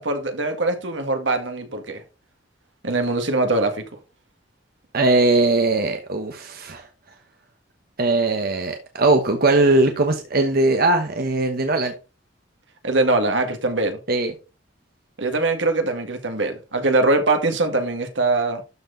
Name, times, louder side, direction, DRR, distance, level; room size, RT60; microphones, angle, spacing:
voice 1, 0.0-2.0 2.8-3.8 12.8-14.0 15.2-18.6, right 2 dB, 75° right, 1.8 m, -22 dB
voice 2, 4.9-6.9 8.0-11.9 14.1-14.3, right 2 dB, 55° right, 1.1 m, -20 dB
12.5 x 4.5 x 3.9 m
head